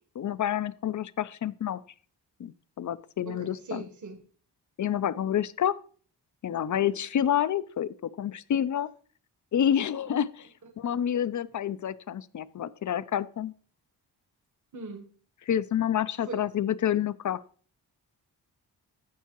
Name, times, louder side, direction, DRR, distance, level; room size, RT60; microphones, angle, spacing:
voice 1, 0.2-1.8 2.4-3.8 4.8-5.8 6.4-8.9 9.5-10.5 10.8-13.5 15.5-17.4, left 10 dB, 50° left, 0.5 m, -28 dB
voice 2, 3.2-4.2 9.9-10.0 10.6-10.7 14.7-15.1 16.2-16.5, right 4 dB, 45° right, 1.2 m, -40 dB
15.5 x 5.6 x 2.9 m
wide cardioid pair, 130°, 40 cm